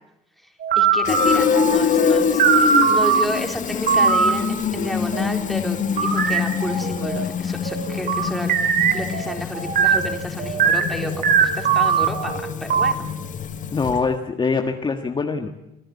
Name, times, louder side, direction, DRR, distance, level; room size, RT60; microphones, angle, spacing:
Star Trek computer sound, 0.6-3.2 3.9-4.3 4.7-5.3 6.0-7.2 7.7-12.9, right 6 dB, 60° right, 3.5 m, -20 dB
voice 1, 0.8-8.5 8.9-13.0, equal, ahead, 3 dB, 3.9 m, -31 dB
Fill (with liquid), 1.0-14.2, left 7 dB, 50° left, 1.8 m, -25 dB
voice 2, 13.7-15.5, left 4 dB, 30° left, 4 dB, 1.6 m, -23 dB
26.0 x 15.5 x 8.5 m, 0.93 s
cardioid pair, 110°, 17 cm